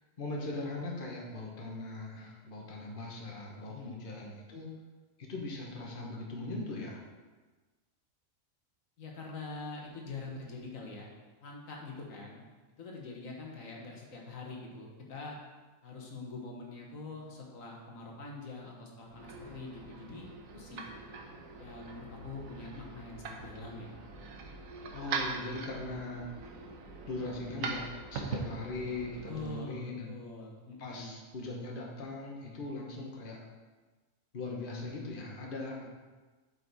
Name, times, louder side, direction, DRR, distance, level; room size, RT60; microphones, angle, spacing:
voice 1, 0.2-4.7 5.2-7.0 24.9-26.2 27.1-30.2 30.8-33.4 34.3-35.8, left 2 dB, 45° left, -2 dB, 1.3 m, -40 dB
voice 2, 3.7-4.0 9.0-11.1 11.4-12.4 12.8-15.4 15.8-20.3 20.5-20.8 21.6-24.0 29.3-31.2 35.7-35.8, left 3 dB, 80° left, -1 dB, 1.6 m, -44 dB
sound 1, 19.0-29.6, right 4 dB, 90° right, 1.3 m, -42 dB
8.0 x 5.6 x 4.1 m, 1.3 s
omnidirectional pair, 1.4 m